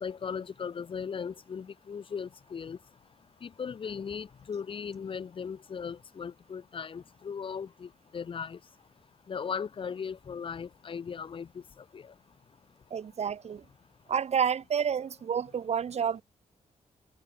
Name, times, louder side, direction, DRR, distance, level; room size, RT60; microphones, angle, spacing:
voice 1, 0.0-2.8 3.4-8.6 9.3-11.5 11.9-12.0, left 6 dB, 40° left, 0.9 m, -37 dB
voice 2, 12.9-13.7 14.1-16.2, right 7 dB, 50° right, 1.9 m, -29 dB
wide cardioid pair, 175°, 14 cm